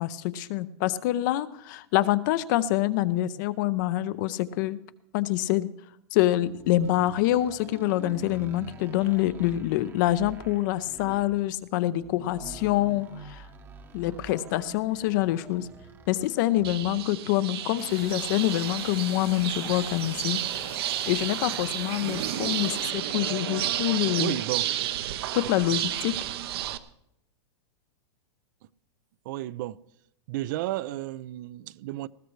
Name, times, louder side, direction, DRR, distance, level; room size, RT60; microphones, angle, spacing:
voice 1, 0.0-4.8 5.1-5.7 6.1-13.4 13.9-15.7 16.1-20.4 21.1-24.4 25.3-26.1, left 14 dB, 45° left, 0.6 m, -26 dB
sound 1, 6.3-17.1, right 3 dB, 15° right, 0.9 m, -47 dB
sound 2, 16.6-26.8, right 12 dB, 65° right, 0.8 m, -31 dB
sound 3, 17.8-22.9, left 9 dB, 70° left, 2.7 m, -45 dB
voice 2, 24.2-24.7 29.3-29.8 30.3-32.1, right 15 dB, 45° right, 0.4 m, -32 dB
19.5 x 15.0 x 3.2 m
supercardioid pair, 155°, 14 cm